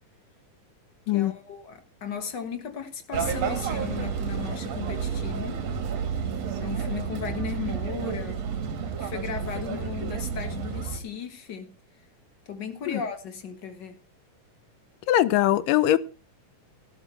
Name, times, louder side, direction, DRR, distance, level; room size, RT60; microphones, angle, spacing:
voice 1, 1.1-5.6 6.6-8.5 9.0-11.7 12.5-14.0, left 7 dB, 45° left, 1.5 m, -36 dB
sound 1, 3.1-11.0, right 6 dB, 55° right, 2.6 m, -30 dB
voice 2, 15.1-16.0, left 13 dB, 85° left, 2.4 m, -21 dB
15.0 x 12.0 x 3.3 m
omnidirectional pair, 3.8 m